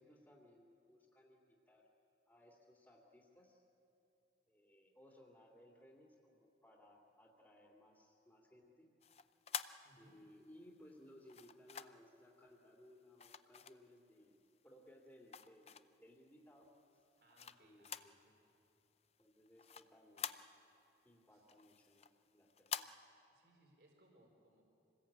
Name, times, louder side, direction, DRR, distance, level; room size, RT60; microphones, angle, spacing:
voice 1, 0.0-1.9 2.3-3.6 4.5-8.9 10.0-16.7 16.9-17.0 17.6-18.1 19.2-20.3 21.0-22.9, left 1 dB, 15° left, -3 dB, 2.5 m, -63 dB
sound 1, 9.0-10.4 11.3-12.1 13.2-14.2 14.7-16.1 16.6-18.2 18.5-18.6 19.0-20.9 21.3-22.9, left 8 dB, 35° left, 0.5 m, -48 dB
voice 2, 9.8-10.2 17.2-18.4 21.3-21.5 23.3-24.6, right 1 dB, 65° right, 0 dB, 3.9 m, -69 dB
26.5 x 20.0 x 8.7 m, 2.9 s
head